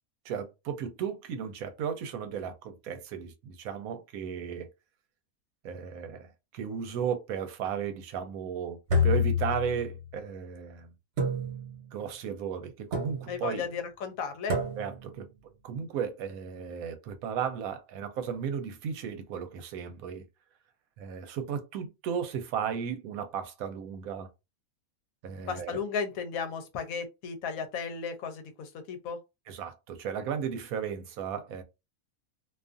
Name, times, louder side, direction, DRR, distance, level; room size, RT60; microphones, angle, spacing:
voice 1, 0.2-4.7 5.6-10.9 11.9-13.7 14.8-15.3 15.6-20.2 21.0-24.3 25.2-25.8 29.5-31.6, right 7 dB, 80° right, 1.0 m, -35 dB
sound 1, 8.9-10.1 11.2-12.0 12.9-13.5 14.5-15.2, left 3 dB, 60° right, 1.2 m, -29 dB
voice 2, 13.3-14.6 25.5-29.2, left 6 dB, 80° left, 1.0 m, -35 dB
2.6 x 2.3 x 2.4 m
omnidirectional pair, 1.5 m